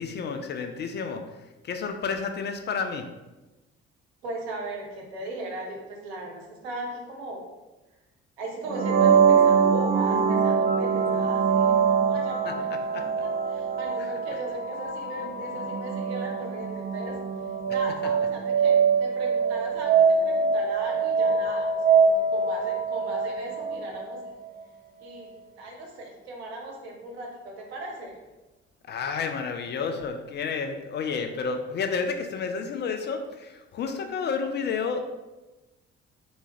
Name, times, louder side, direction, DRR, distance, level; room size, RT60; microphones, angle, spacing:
voice 1, 0.0-3.1 12.5-12.6 12.9-13.0 14.0-14.1 28.9-35.0, left 5 dB, 35° left, 6 dB, 0.4 m, -31 dB
voice 2, 4.2-7.5 8.4-12.7 13.2-17.2 17.7-24.2 25.0-28.2, right 1 dB, 75° right, 0 dB, 0.8 m, -38 dB
sound 1, 8.7-24.3, right 5 dB, 30° right, 0.4 m, -23 dB
3.5 x 2.8 x 2.9 m, 1.1 s
figure-of-eight pair, 45°, 33 cm